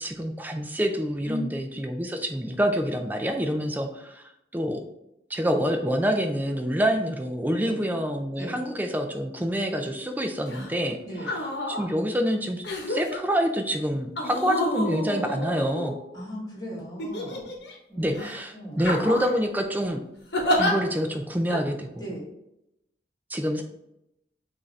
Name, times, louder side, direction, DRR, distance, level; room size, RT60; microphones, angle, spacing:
voice 1, 0.0-4.2 4.5-4.8 5.3-11.0 11.7-16.0 18.0-20.0 20.6-22.1 23.3-23.6, equal, 10° right, 5 dB, 0.4 m, -27 dB
sound 1, 10.5-10.7 11.2-11.8 12.6-13.2 14.2-16.2 17.0-17.7 18.1-18.3 18.8-19.4 20.3-20.7 21.5-21.6, left 1 dB, 65° left, 1.0 m, -29 dB
voice 2, 16.1-17.5 17.9-18.2 18.5-18.8 22.0-22.3, equal, 20° left, -4 dB, 1.6 m, -36 dB
6.0 x 2.7 x 3.2 m, 0.83 s
head